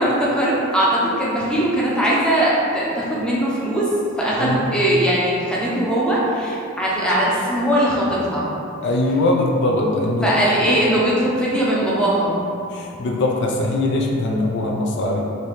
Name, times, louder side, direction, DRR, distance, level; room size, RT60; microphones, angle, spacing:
voice 1, 0.0-3.9 4.2-8.4 10.2-12.4, right 1 dB, 5° left, -6 dB, 0.6 m, -20 dB
voice 2, 4.4-4.7 8.8-10.3 12.7-15.2, left 2 dB, 60° left, -1 dB, 0.4 m, -21 dB
3.3 x 2.8 x 4.1 m, 2.7 s
head